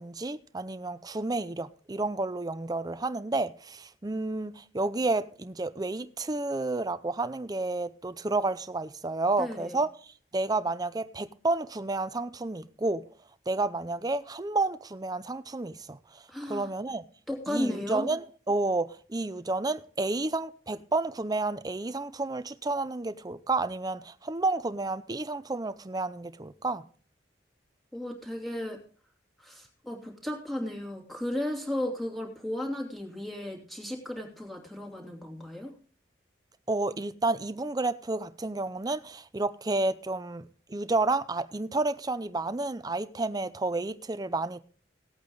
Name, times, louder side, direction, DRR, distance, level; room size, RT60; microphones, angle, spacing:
voice 1, 0.0-13.0 13.5-17.0 17.5-26.8 36.7-44.6, right 2 dB, 20° right, 0.6 m, -31 dB
voice 2, 9.4-9.8 16.3-16.7 17.3-18.0 27.9-28.8 29.4-35.7, left 1 dB, ahead, 2.9 m, -34 dB
17.5 x 8.6 x 3.9 m
head